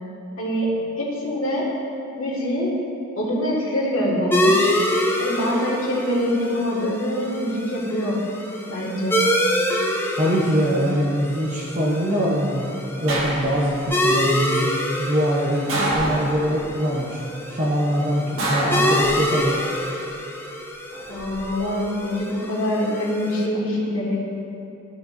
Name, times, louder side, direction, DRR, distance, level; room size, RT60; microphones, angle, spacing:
voice 1, 0.4-0.7 1.0-1.7 2.2-2.8 3.2-4.7 5.2-8.2 8.7-9.2 21.1-24.3, equal, 75° left, -5 dB, 1.7 m, -24 dB
sound 1, 4.3-23.5, left 1 dB, 10° left, 0.5 m, -26 dB
voice 2, 10.2-12.7 13.0-17.2 17.5-19.6, equal, 35° right, -5 dB, 0.7 m, -23 dB
sound 2, 13.1-13.9 15.7-16.6 18.4-19.5 20.9-21.5, right 1 dB, 80° right, 1.6 m, -26 dB
13.5 x 4.9 x 2.5 m, 2.7 s
head